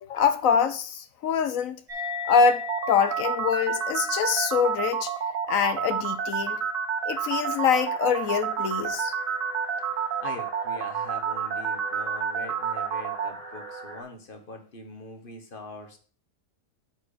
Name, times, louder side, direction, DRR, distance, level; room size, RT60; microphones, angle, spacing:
voice 1, 0.0-1.8 2.3-5.1 5.5-6.6 7.1-9.1, left 6 dB, 75° left, 1.2 m, -24 dB
sound 1, 1.9-8.8, left 3 dB, 40° right, 2.6 m, -39 dB
sound 2, 2.7-13.3, right 7 dB, 70° right, 1.2 m, -29 dB
sound 3, 7.1-14.0, right 2 dB, ahead, 2.3 m, -44 dB
voice 2, 10.0-16.0, left 2 dB, 40° left, 1.5 m, -43 dB
8.8 x 4.7 x 5.0 m
omnidirectional pair, 1.4 m